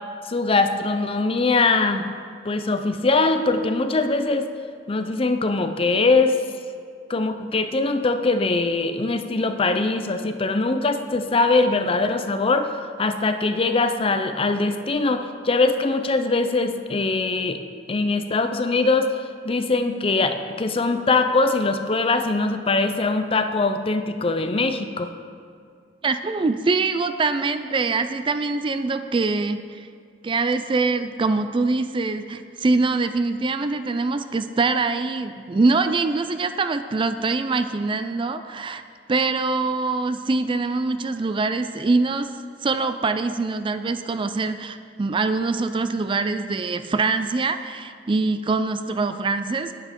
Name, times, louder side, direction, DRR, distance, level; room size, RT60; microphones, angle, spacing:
voice 1, 0.3-2.0 2.4-4.5 4.9-6.4 7.1-17.6 17.9-19.1 19.4-25.1, left 3 dB, 30° left, 8 dB, 0.6 m, -22 dB
voice 2, 26.0-29.9 30.2-38.8 39.1-42.3 42.6-49.8, right 3 dB, 30° right, 10 dB, 0.4 m, -24 dB
9.7 x 9.6 x 5.2 m, 2.2 s
head